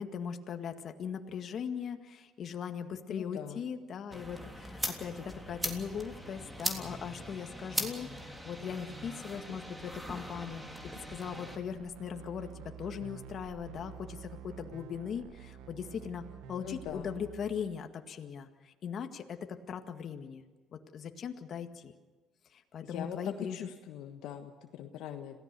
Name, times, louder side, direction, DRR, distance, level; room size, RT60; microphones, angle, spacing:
voice 1, 0.0-19.4 19.7-20.4 20.7-21.9 22.5-23.7, left 7 dB, 55° left, 6 dB, 1.9 m, -39 dB
voice 2, 3.1-3.6 16.6-17.1 22.8-25.4, left 10 dB, 80° left, 5 dB, 1.4 m, -42 dB
sound 1, 4.1-11.6, equal, 10° right, 3.4 m, -40 dB
sound 2, 10.8-17.8, right 8 dB, 85° right, 1.3 m, -49 dB
26.5 x 17.0 x 6.9 m, 1.2 s
supercardioid pair, 85°, 0 cm